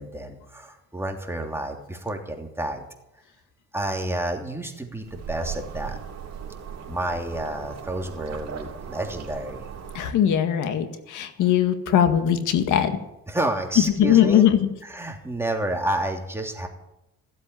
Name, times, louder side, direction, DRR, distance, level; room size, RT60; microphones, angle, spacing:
voice 1, 0.0-2.8 3.7-6.0 6.9-9.6 13.3-14.4 14.8-16.7, right 1 dB, 10° right, 2 dB, 3.1 m, -30 dB
sound 1, 5.0-10.1, right 7 dB, 60° right, 3.2 m, -38 dB
voice 2, 9.9-12.9 14.0-14.7, left 10 dB, 85° left, 8 dB, 1.9 m, -20 dB
15.5 x 8.3 x 10.0 m, 0.88 s
cardioid pair, 90°, 30 cm